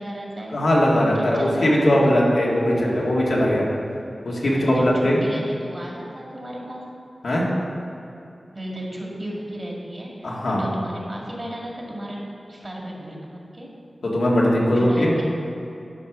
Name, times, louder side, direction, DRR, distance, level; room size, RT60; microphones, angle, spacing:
voice 1, 0.0-0.6 1.1-2.3 4.5-6.8 8.5-13.7 14.7-15.2, right 1 dB, 35° right, -2 dB, 2.1 m, -34 dB
voice 2, 0.5-3.7 4.2-5.2 7.2-7.5 10.2-10.6 14.0-15.2, equal, 80° left, -5 dB, 1.9 m, -20 dB
11.0 x 5.1 x 6.1 m, 2.7 s
wide cardioid pair, 80°, 0 cm